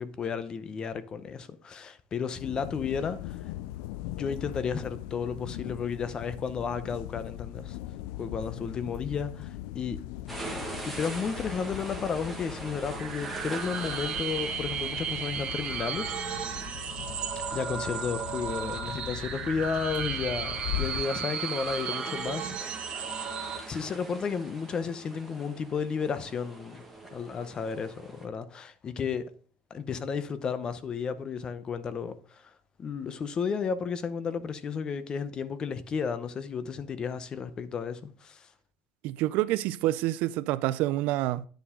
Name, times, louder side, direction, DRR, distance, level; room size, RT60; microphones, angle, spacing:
voice 1, 0.0-3.5 4.0-7.8 8.2-10.0 10.9-16.8 17.5-23.0 23.7-26.8 27.1-29.3 29.7-32.5 32.8-38.5, left 6 dB, 30° left, 0.7 m, -33 dB
sound 1, 2.4-21.0, left 14 dB, 85° left, 0.4 m, -40 dB
sound 2, 10.3-28.3, right 1 dB, 5° left, 1.5 m, -44 dB
sound 3, 12.9-23.6, right 7 dB, 35° right, 1.6 m, -34 dB
voice 2, 39.0-41.5, right 16 dB, 65° right, 0.4 m, -27 dB
10.5 x 7.1 x 3.7 m
cardioid pair, 145°, 3 cm